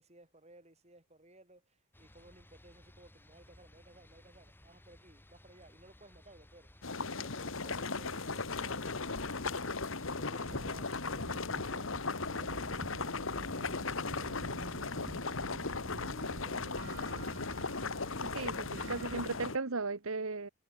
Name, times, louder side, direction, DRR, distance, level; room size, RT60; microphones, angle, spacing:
voice 1, 0.0-15.7 16.1-17.3, right 2 dB, 30° right, 7.4 m, -59 dB
sound 1, 1.9-10.6, left 1 dB, 10° left, 3.9 m, -59 dB
sound 2, 6.8-19.6, left 4 dB, 60° left, 1.6 m, -37 dB
sound 3, 9.9-19.3, right 1 dB, 50° right, 1.9 m, -48 dB
voice 2, 18.2-20.5, right 3 dB, 70° right, 1.3 m, -36 dB
head